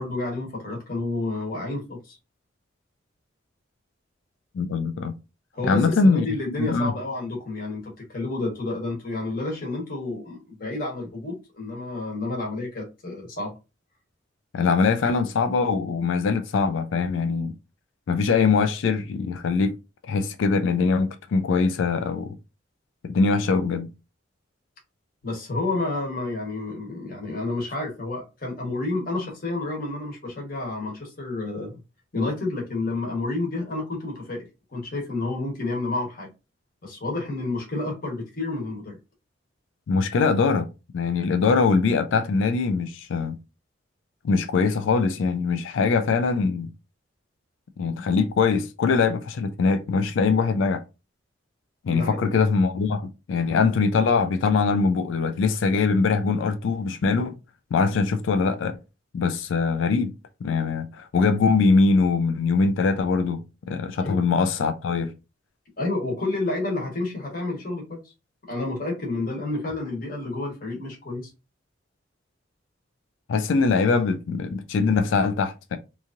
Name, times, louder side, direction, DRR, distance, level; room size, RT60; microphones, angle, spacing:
voice 1, 0.0-2.2 5.5-13.5 25.2-31.8 32.1-36.3 36.8-38.9 51.9-52.3 64.0-64.2 65.8-68.0 68.5-71.3, left 2 dB, 45° left, 1.1 m, -30 dB
voice 2, 4.5-5.1 5.7-6.3 6.6-6.9 14.5-17.5 18.1-19.8 20.1-22.3 23.0-23.9 39.9-40.7 40.9-43.4 44.2-46.7 47.8-50.8 51.8-57.4 57.7-58.7 59.1-60.1 60.4-65.1 73.3-75.8, left 4 dB, 75° left, 0.3 m, -22 dB
2.9 x 2.6 x 2.4 m
head